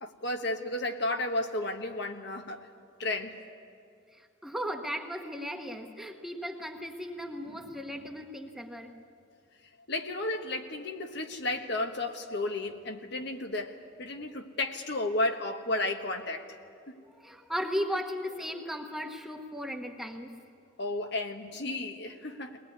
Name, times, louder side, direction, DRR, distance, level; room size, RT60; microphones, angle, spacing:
voice 1, 0.0-2.7 3.0-3.4 9.9-16.5 16.9-17.0 20.8-22.6, left 2 dB, 55° left, 5 dB, 1.3 m, -33 dB
voice 2, 4.1-8.9 17.0-20.3, equal, ahead, 3 dB, 1.2 m, -36 dB
22.0 x 19.5 x 9.6 m, 2.4 s
head